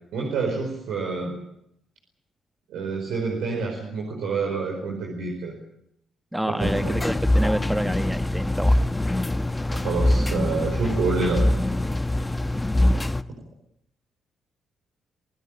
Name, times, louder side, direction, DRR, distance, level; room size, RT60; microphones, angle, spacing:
voice 1, 0.1-1.4 2.7-5.5 6.5-7.0 9.7-11.5, right 4 dB, 80° right, 0 dB, 4.9 m, -28 dB
voice 2, 6.3-8.8 12.6-12.7, right 1 dB, 5° right, 9 dB, 1.4 m, -28 dB
sound 1, 6.6-13.2, left 1 dB, 15° left, 1.1 m, -23 dB
27.0 x 16.5 x 8.9 m, 0.76 s
supercardioid pair, 60°, 0 cm